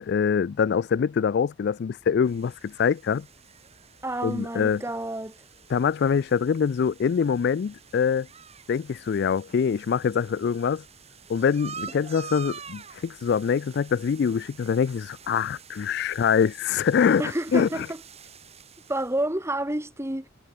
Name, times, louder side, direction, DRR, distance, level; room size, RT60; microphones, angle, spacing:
voice 1, 0.0-3.3 4.2-4.8 5.7-8.3 8.7-10.8 11.3-17.2 17.5-17.9, left 6 dB, 55° left, 0.3 m, -24 dB
sound 1, 2.2-19.2, right 6 dB, 30° right, 3.2 m, -47 dB
voice 2, 4.0-5.4 17.2-18.0 18.9-20.3, right 1 dB, 15° right, 1.7 m, -29 dB
head